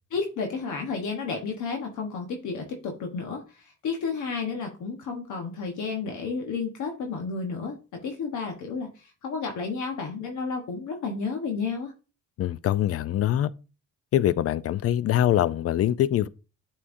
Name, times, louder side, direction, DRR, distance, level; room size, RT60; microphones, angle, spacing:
voice 1, 0.1-11.9, left 4 dB, 75° left, 1.2 m, -32 dB
voice 2, 12.4-13.5 14.1-16.3, left 12 dB, 50° left, 0.4 m, -23 dB
8.3 x 4.4 x 2.6 m
cardioid pair, 90°, 30 cm